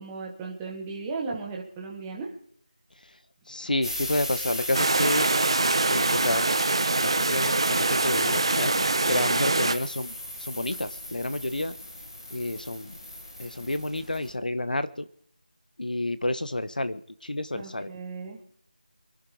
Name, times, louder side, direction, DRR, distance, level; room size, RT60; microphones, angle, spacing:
voice 1, 0.0-2.3 17.5-18.4, right 4 dB, 5° right, -1 dB, 1.2 m, -36 dB
voice 2, 3.5-5.3 5.9-6.5 7.0-11.7 12.3-12.9 13.4-15.1 15.8-17.9, left 1 dB, 75° left, 12 dB, 1.4 m, -30 dB
sound 1, 3.8-14.3, left 1 dB, 30° left, 4.3 m, -37 dB
sound 2, 4.7-9.7, right 2 dB, 35° right, 1.1 m, -24 dB
24.0 x 11.5 x 5.0 m, 0.65 s
figure-of-eight pair, 175°, 5 cm